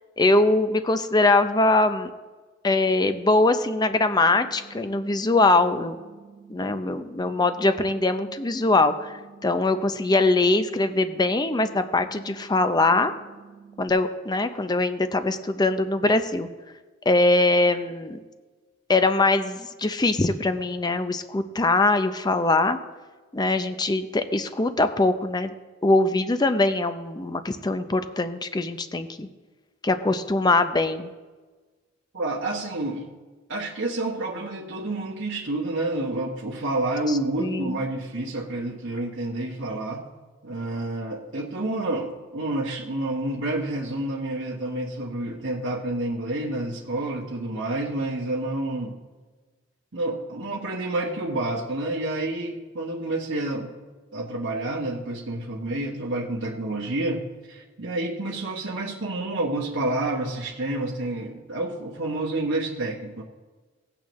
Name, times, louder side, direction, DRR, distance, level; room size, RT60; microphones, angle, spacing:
voice 1, 0.2-2.1 2.6-6.0 6.5-13.1 13.8-16.5 17.1-18.2 18.9-22.8 23.3-25.5 25.8-29.3 29.8-31.1 37.1-37.8, left 2 dB, 20° left, 10 dB, 0.5 m, -22 dB
sound 1, 3.9-13.9, right 6 dB, 25° right, 1.2 m, -49 dB
voice 2, 32.1-33.1 33.5-40.1 40.4-49.0 49.9-53.7 54.1-63.2, right 2 dB, 75° right, -3 dB, 1.2 m, -29 dB
17.0 x 8.5 x 3.1 m, 1.3 s
head